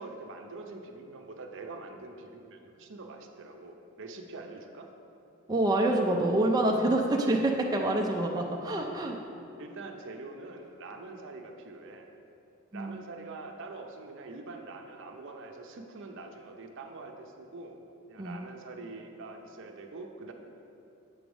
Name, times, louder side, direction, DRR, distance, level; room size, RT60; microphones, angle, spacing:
voice 1, 0.0-4.9 9.6-12.1 12.7-17.8 18.1-20.3, right 3 dB, 60° right, 4 dB, 0.6 m, -44 dB
voice 2, 5.5-9.2 12.7-13.0 18.2-18.4, right 1 dB, 20° right, 1 dB, 0.4 m, -27 dB
7.8 x 3.2 x 6.1 m, 2.7 s
head